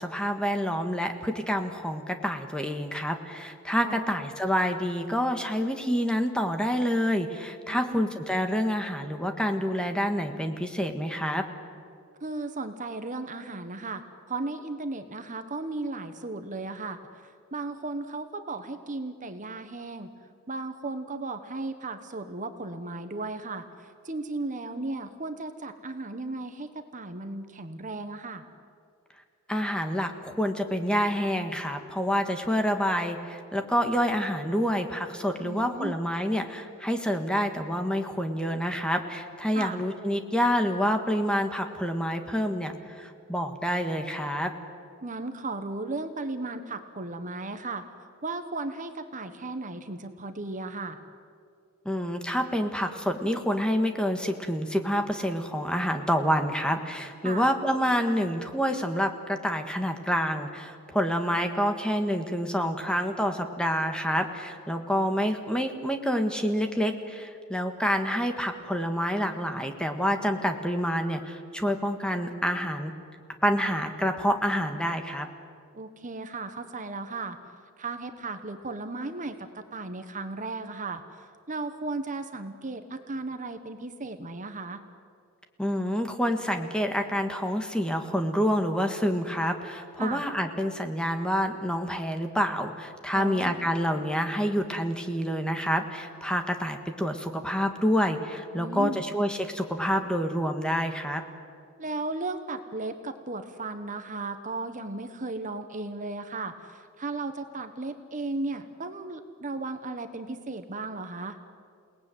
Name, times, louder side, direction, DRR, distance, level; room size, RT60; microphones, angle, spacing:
voice 1, 0.0-11.4 29.5-44.5 51.8-72.9 73.4-75.3 85.6-101.2, equal, 5° left, 5 dB, 1.6 m, -28 dB
voice 2, 3.8-4.2 7.7-8.1 12.2-20.1 20.5-28.4 35.4-36.0 39.5-39.8 45.0-47.8 48.2-51.0 57.2-57.5 75.7-77.4 77.8-84.8 90.0-90.2 93.1-93.6 98.5-99.0 101.8-111.4, right 3 dB, 35° right, 8 dB, 1.2 m, -35 dB
29.0 x 19.0 x 9.3 m, 2.3 s
head